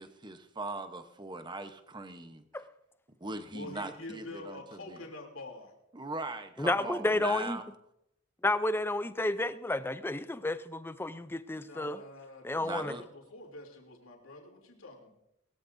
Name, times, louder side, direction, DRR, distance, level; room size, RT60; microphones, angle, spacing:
voice 1, 0.0-2.4 3.2-5.0 5.9-7.6 12.6-13.0, right 2 dB, 20° right, 0.9 m, -40 dB
voice 2, 3.5-5.7 11.5-15.1, left 2 dB, 75° left, 3.1 m, -47 dB
voice 3, 6.6-7.6 8.4-12.0 12.4-12.9, left 2 dB, 10° left, 0.5 m, -31 dB
20.5 x 14.0 x 2.7 m
head